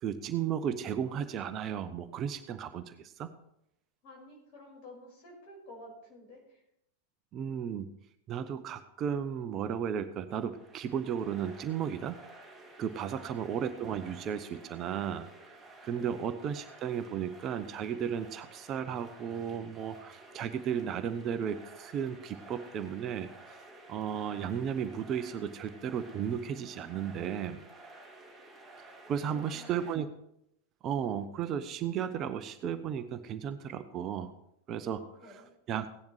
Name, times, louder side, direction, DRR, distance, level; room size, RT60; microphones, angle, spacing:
voice 1, 0.0-3.3 7.3-7.9 8.3-12.2 12.8-15.6 15.8-23.3 23.9-27.6 29.1-30.1 30.8-34.3 34.7-35.0 35.7-35.9, right 8 dB, 30° right, 11 dB, 0.7 m, -34 dB
voice 2, 4.0-6.6 13.1-13.4 15.9-16.3 29.3-29.7 31.1-31.3 35.0-35.5, left 1 dB, 45° left, 0 dB, 5.4 m, -52 dB
sound 1, 10.4-30.0, right 2 dB, 10° right, 2.1 m, -53 dB
16.0 x 10.5 x 3.3 m, 0.77 s
figure-of-eight pair, 90°, 0 cm